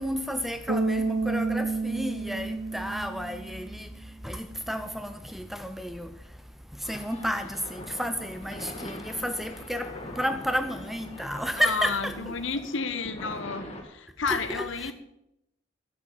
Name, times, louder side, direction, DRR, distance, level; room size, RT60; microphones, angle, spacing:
voice 1, 0.0-3.9 4.2-6.1 6.9-9.9 10.2-12.3 14.3-14.9, equal, ahead, 0.6 m, -31 dB
Bass guitar, 0.7-3.8, right 3 dB, 45° right, 0.8 m, -29 dB
sound 1, 6.8-13.8, left 1 dB, 30° left, 2.1 m, -43 dB
voice 2, 11.6-14.9, left 4 dB, 65° left, 1.1 m, -31 dB
12.5 x 7.5 x 7.2 m
head